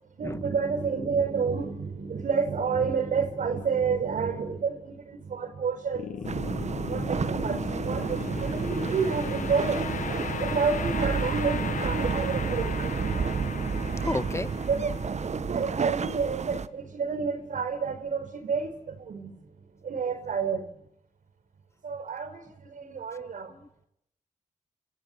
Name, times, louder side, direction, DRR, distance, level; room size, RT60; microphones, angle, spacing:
voice 1, 0.2-6.3 6.6-12.7 14.3-14.9 15.4-19.3 19.8-20.6 21.8-23.5, right 5 dB, 90° right, 8 dB, 4.7 m, -30 dB
sound 1, 5.9-17.1, left 7 dB, 80° left, 1.0 m, -37 dB
sound 2, 6.2-16.7, right 5 dB, 60° right, 1.3 m, -30 dB
voice 2, 14.0-14.5 15.4-15.5 22.8-23.0 23.5-23.7, left 2 dB, 20° left, 13 dB, 1.5 m, -34 dB
27.5 x 16.0 x 9.8 m, 0.76 s
cardioid pair, 60°, 13 cm